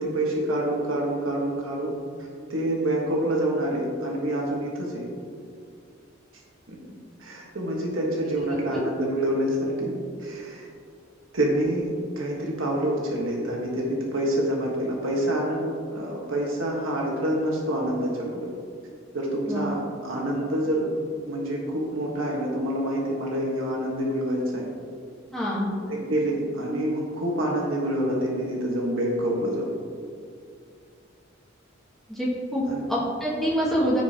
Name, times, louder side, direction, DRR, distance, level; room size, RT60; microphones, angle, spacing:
voice 1, 0.0-1.9 2.5-5.1 6.7-6.8 7.2-9.9 10.2-10.7 11.3-15.7 15.9-18.5 19.1-20.9 21.2-24.7 25.9-29.7 32.6-32.8, right 1 dB, 85° right, -2 dB, 1.5 m, -27 dB
voice 2, 25.3-25.7 32.1-32.6 32.9-34.0, equal, ahead, -9 dB, 2.2 m, -26 dB
15.0 x 5.1 x 2.9 m, 2.3 s
head